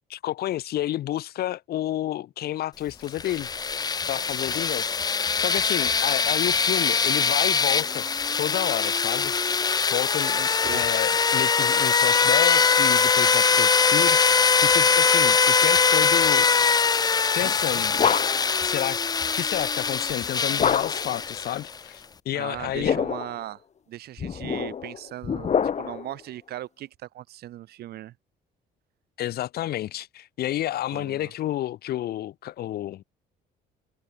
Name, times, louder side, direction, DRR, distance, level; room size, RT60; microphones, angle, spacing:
voice 1, 0.1-3.5 4.1-5.0 5.4-8.0 8.4-9.3 9.9-16.5 17.1-17.9 18.6-19.0 19.3-23.0 29.2-33.0, left 13 dB, 65° left, 3.0 m, -30 dB
sound 1, 3.1-21.8, left 5 dB, 25° left, 0.6 m, -22 dB
voice 2, 10.5-10.8 22.3-23.6 23.9-28.1 30.9-31.3, right 14 dB, 70° right, 4.3 m, -38 dB
sound 2, 17.4-18.6 20.6-21.2 22.6-23.4 24.2-26.1, left 7 dB, 40° left, 5.9 m, -26 dB
cardioid pair, 110°, 17 cm